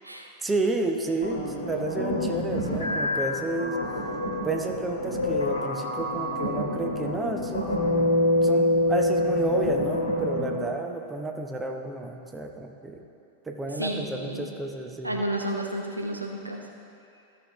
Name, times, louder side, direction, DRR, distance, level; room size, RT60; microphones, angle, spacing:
voice 1, 0.4-3.8 4.4-7.8 8.4-13.1 13.5-15.3, right 2 dB, 10° right, 3 dB, 0.7 m, -31 dB
sound 1, 1.2-10.7, left 1 dB, 75° left, 1.2 m, -26 dB
voice 2, 13.8-14.5 15.0-16.6, right 1 dB, 85° right, 1 dB, 0.8 m, -31 dB
14.0 x 6.5 x 3.1 m, 2.6 s
figure-of-eight pair, 90°, 0 cm